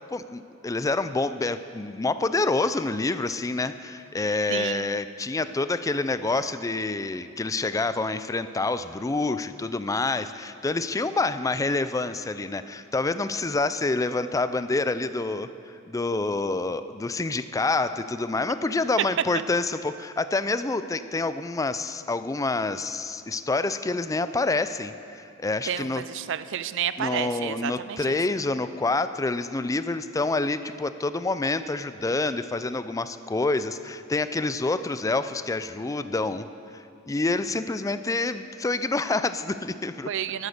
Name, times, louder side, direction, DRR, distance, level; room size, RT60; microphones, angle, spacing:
voice 1, 0.1-15.5 15.9-26.0 27.0-36.5 36.7-40.1, left 3 dB, 15° left, 12 dB, 0.4 m, -27 dB
voice 2, 4.5-5.0 25.7-28.2 40.1-40.5, right 9 dB, 60° right, 14 dB, 0.5 m, -31 dB
11.5 x 11.5 x 6.6 m, 2.6 s
head